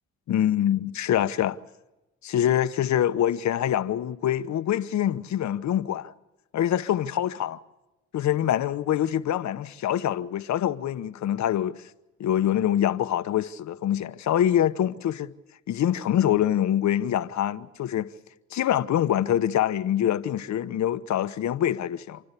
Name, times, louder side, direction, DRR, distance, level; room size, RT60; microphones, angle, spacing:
voice 1, 0.3-1.6 2.2-6.1 6.5-7.6 8.1-11.8 12.2-15.3 15.7-18.1 18.5-22.2, left 11 dB, 70° left, 1.0 m, -25 dB
29.0 x 12.0 x 8.4 m
cardioid pair, 90°, 30 cm